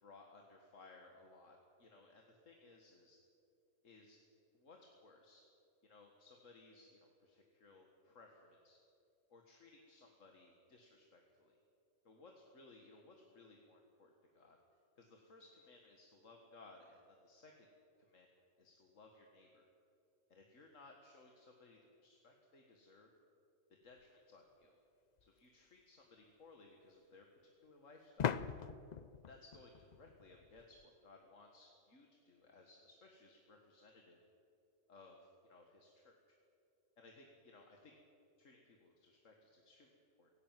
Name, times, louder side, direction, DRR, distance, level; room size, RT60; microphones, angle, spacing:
voice 1, 0.0-3.2 3.8-4.2 4.5-5.4 5.8-8.8 9.3-11.6 12.0-14.6 15.0-17.7 18.0-18.3 18.6-19.7 20.3-23.1 23.8-24.8 25.4-28.5 29.3-34.2 34.9-36.4 37.0-37.9 38.4-40.3, left 3 dB, 90° left, 2 dB, 2.1 m, -62 dB
sound 1, 25.2-25.3 28.2-30.8, left 7 dB, 55° left, 0.5 m, -41 dB
17.5 x 16.5 x 9.2 m, 2.7 s
omnidirectional pair, 1.3 m